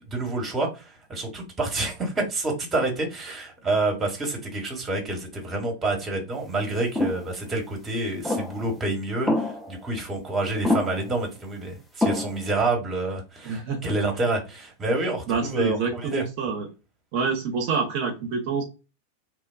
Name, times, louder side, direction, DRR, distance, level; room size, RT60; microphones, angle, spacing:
voice 1, 0.1-16.2, right 2 dB, 20° right, 0.9 m, -28 dB
sound 1, 6.9-7.2 8.2-8.7 9.3-9.8 10.6-11.1 12.0-12.5, left 2 dB, 5° left, 0.5 m, -26 dB
voice 2, 13.4-13.9 15.3-16.7 17.1-18.6, right 5 dB, 45° right, 0.5 m, -27 dB
3.0 x 2.2 x 2.2 m
figure-of-eight pair, 90°, 0 cm